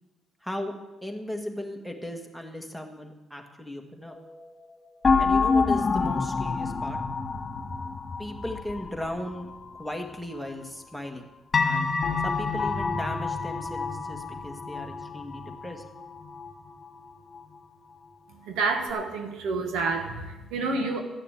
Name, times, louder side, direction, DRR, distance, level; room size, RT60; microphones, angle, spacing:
voice 1, 0.4-0.7 1.0-4.2 5.2-7.0 8.2-9.5 9.8-11.3 11.6-11.9 12.2-15.8, left 1 dB, ahead, 4 dB, 1.8 m, -37 dB
sound 1, 5.0-9.5 11.5-16.9 17.3-17.4, left 4 dB, 35° left, 1.9 m, -27 dB
voice 2, 18.3-21.0, right 3 dB, 90° right, 5 dB, 1.5 m, -29 dB
13.0 x 6.6 x 8.8 m, 1.1 s
cardioid pair, 90°, 0 cm